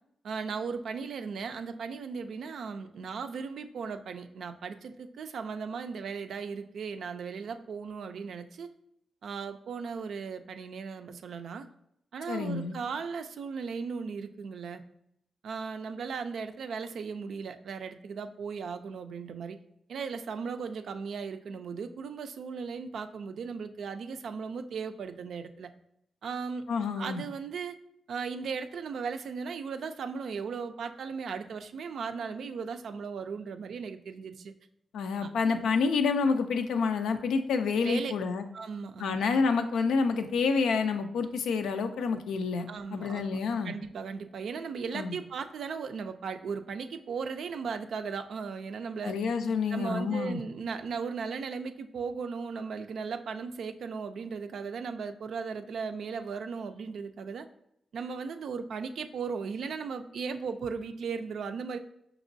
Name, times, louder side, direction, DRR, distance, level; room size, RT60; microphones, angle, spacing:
voice 1, 0.2-8.7 9.2-11.7 12.1-14.8 15.4-19.6 19.9-25.7 26.2-26.7 27.0-27.8 28.1-34.5 35.2-35.3 37.8-38.1 38.5-39.2 42.7-43.4 43.6-49.1 49.7-57.5 57.9-61.8, right 5 dB, 75° right, 8 dB, 0.3 m, -37 dB
voice 2, 12.3-12.8 26.7-27.2 34.9-38.4 39.0-42.7 42.9-43.7 44.9-45.2 49.0-50.4, left 5 dB, 90° left, 7 dB, 0.4 m, -28 dB
5.2 x 3.0 x 2.5 m, 0.77 s
cardioid pair, 60°, 0 cm